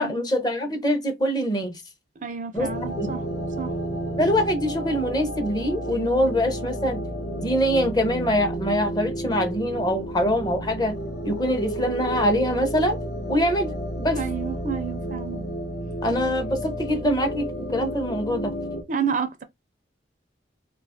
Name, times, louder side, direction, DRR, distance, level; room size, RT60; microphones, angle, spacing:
voice 1, 0.0-1.8 2.5-2.7 3.0-3.1 4.2-7.0 7.3-11.0 11.2-13.0 13.3-14.2 16.0-18.5, equal, 20° left, 0.6 m, -24 dB
voice 2, 2.2-3.3 3.6-3.8 14.1-15.4 18.9-19.4, right 6 dB, 40° right, 0.4 m, -29 dB
sound 1, 2.5-18.8, right 1 dB, 75° left, 0.9 m, -31 dB
2.8 x 2.3 x 3.5 m
head